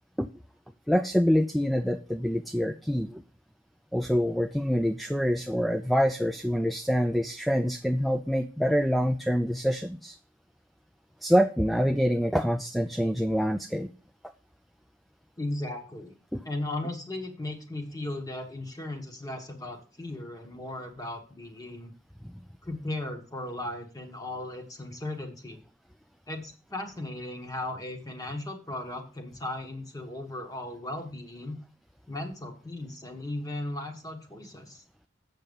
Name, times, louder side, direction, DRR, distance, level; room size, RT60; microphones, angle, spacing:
voice 1, 0.9-3.2 3.9-10.2 11.2-13.9 16.3-16.4, equal, ahead, 6 dB, 0.3 m, -26 dB
voice 2, 15.4-16.1 16.4-21.9 22.6-25.6 26.3-31.6 32.1-34.8, left 1 dB, 20° left, 4 dB, 1.4 m, -36 dB
7.5 x 6.6 x 5.3 m, 0.38 s
head